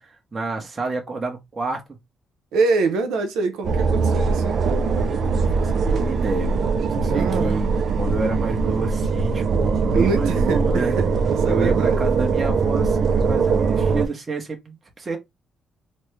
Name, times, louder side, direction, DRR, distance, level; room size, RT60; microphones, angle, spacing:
voice 1, 0.0-2.0 5.2-6.7 7.0-7.7 8.0-11.0 11.5-15.2, right 3 dB, 30° right, 0.9 m, -29 dB
voice 2, 2.5-4.7 7.1-7.6 9.9-11.1 11.4-12.1, right 4 dB, 90° right, 0.7 m, -24 dB
sound 1, 3.6-14.1, right 4 dB, 55° right, 0.4 m, -21 dB
3.1 x 2.1 x 3.1 m
cardioid pair, 90°, 0 cm